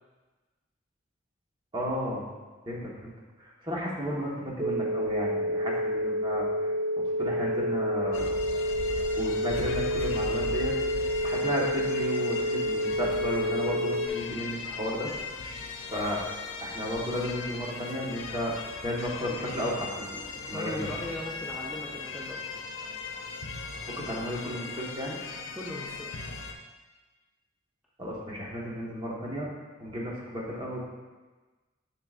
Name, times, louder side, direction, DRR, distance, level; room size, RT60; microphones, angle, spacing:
voice 1, 1.7-2.3 2.7-3.1 3.4-6.7 7.2-8.3 9.2-10.7 11.2-15.1 15.8-16.2 16.6-18.5 18.8-20.2 20.5-20.9 23.9-25.2 28.0-29.5 29.8-30.8, equal, 25° right, -4 dB, 1.4 m, -33 dB
sound 1, 4.6-14.1, equal, 60° right, 0.5 m, -29 dB
sound 2, 8.1-26.5, left 4 dB, 85° left, 0.6 m, -38 dB
voice 2, 20.5-22.4 25.6-26.1, left 1 dB, ahead, -6 dB, 0.5 m, -39 dB
7.7 x 6.6 x 2.5 m, 1.3 s
head